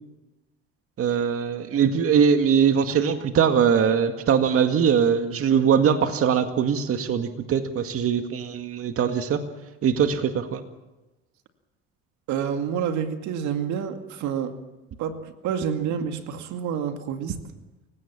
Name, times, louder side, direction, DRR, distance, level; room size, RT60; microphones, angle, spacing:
voice 1, 1.0-9.4 9.8-10.6, right 7 dB, 50° right, 7 dB, 2.0 m, -21 dB
voice 2, 12.3-14.6 15.0-17.4, right 8 dB, 70° right, 7 dB, 2.3 m, -28 dB
28.5 x 16.5 x 7.4 m, 1.1 s
supercardioid pair, 80°, 30 cm